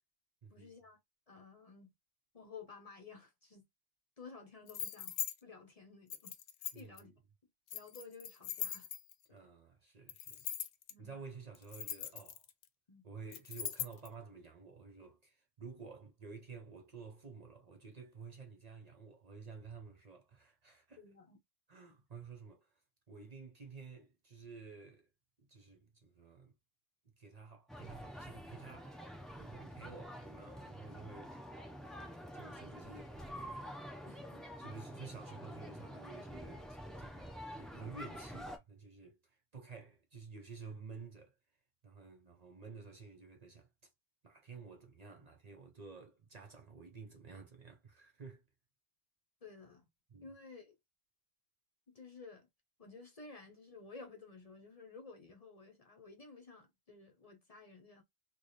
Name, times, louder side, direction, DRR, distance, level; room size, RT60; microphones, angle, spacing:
voice 1, 0.5-1.0 1.3-1.9 2.3-3.7 4.2-7.1 7.7-8.9 9.3-9.5 10.9-11.2 12.9-13.0 21.0-21.4 34.1-34.4 49.4-49.8 50.2-50.8 51.9-52.5 52.8-58.0, left 4 dB, 40° left, 0.8 m, -54 dB
sound 1, 4.7-5.3 6.1-7.0 7.7-9.2 10.1-10.9 11.5-12.6 13.3-14.1, left 10 dB, 85° left, 0.9 m, -41 dB
voice 2, 6.7-7.1 9.3-10.4 11.0-12.4 13.0-21.0 21.7-22.8 23.1-25.1 25.4-26.5 27.0-29.0 29.4-32.0 32.3-33.6 34.6-41.3 41.8-43.7 44.2-48.4 50.1-50.3, right 4 dB, 45° right, 0.7 m, -52 dB
sound 2, 27.7-38.6, equal, ahead, 0.5 m, -48 dB
3.3 x 2.2 x 4.0 m
omnidirectional pair, 1.0 m